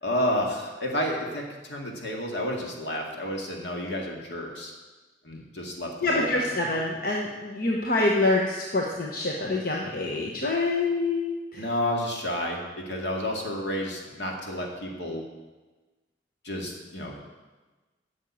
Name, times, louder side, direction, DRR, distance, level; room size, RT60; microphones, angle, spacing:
voice 1, 0.0-4.7 5.2-6.5 11.6-15.2 16.4-17.2, left 1 dB, 75° left, 0 dB, 2.2 m, -31 dB
voice 2, 6.0-11.6, left 2 dB, 50° left, -1 dB, 1.1 m, -26 dB
9.0 x 6.4 x 8.6 m, 1.2 s
head